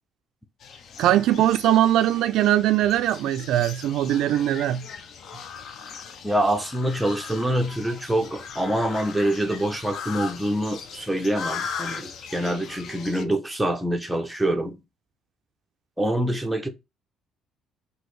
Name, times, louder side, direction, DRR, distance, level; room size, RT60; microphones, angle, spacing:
sound 1, 0.6-13.2, left 6 dB, 45° left, 0.5 m, -39 dB
voice 1, 1.0-4.9, right 12 dB, 70° right, 0.3 m, -21 dB
voice 2, 6.2-14.8 16.0-16.7, right 1 dB, ahead, 0.5 m, -25 dB
6.1 x 2.7 x 3.2 m
cardioid pair, 165°, 0 cm